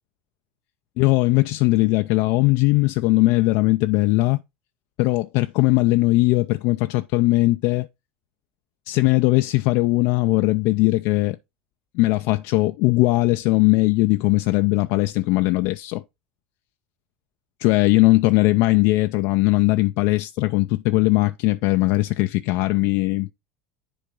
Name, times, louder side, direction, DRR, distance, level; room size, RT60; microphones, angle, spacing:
voice 1, 1.0-4.4 5.0-7.9 8.9-11.4 11.9-16.0 17.6-23.3, left 21 dB, 65° left, 0.3 m, -19 dB
10.0 x 3.5 x 3.7 m
hypercardioid pair, 85°, 5 cm